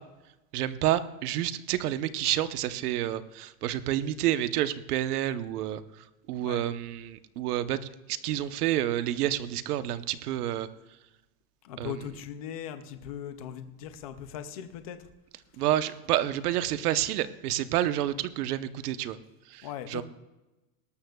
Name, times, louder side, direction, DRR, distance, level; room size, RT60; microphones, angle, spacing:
voice 1, 0.5-7.8 8.1-10.7 11.8-11.9 15.6-19.2 19.5-20.0, right 12 dB, 70° right, 13 dB, 1.0 m, -29 dB
voice 2, 11.6-15.1 19.6-20.0, left 9 dB, 25° left, 10 dB, 0.3 m, -39 dB
18.5 x 13.0 x 2.3 m, 1.0 s
supercardioid pair, 175°, 47 cm